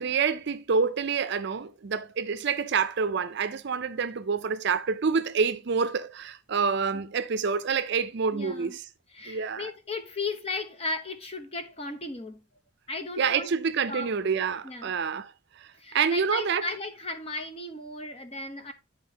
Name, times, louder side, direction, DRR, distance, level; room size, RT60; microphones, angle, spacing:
voice 1, 0.0-8.8 9.3-9.7 13.2-16.6, right 5 dB, 60° right, 0.5 m, -27 dB
voice 2, 8.3-8.8 9.1-12.4 12.9-13.5 13.9-14.1 14.6-14.9 15.8-18.7, left 3 dB, 30° left, 0.9 m, -35 dB
11.0 x 4.4 x 2.9 m
head